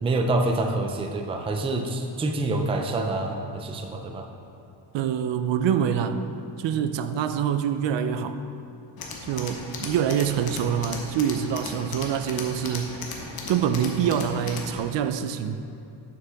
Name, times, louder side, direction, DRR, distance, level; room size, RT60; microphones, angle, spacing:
voice 1, 0.0-4.3, right 2 dB, 15° right, 4 dB, 0.3 m, -26 dB
voice 2, 4.9-6.3 6.6-8.4 9.3-13.0 13.5-15.6, right 8 dB, 75° right, 10 dB, 0.5 m, -25 dB
Tools, 9.0-14.8, left 3 dB, 55° left, 1.0 m, -37 dB
9.0 x 7.0 x 3.4 m, 2.6 s
wide cardioid pair, 170°, 44 cm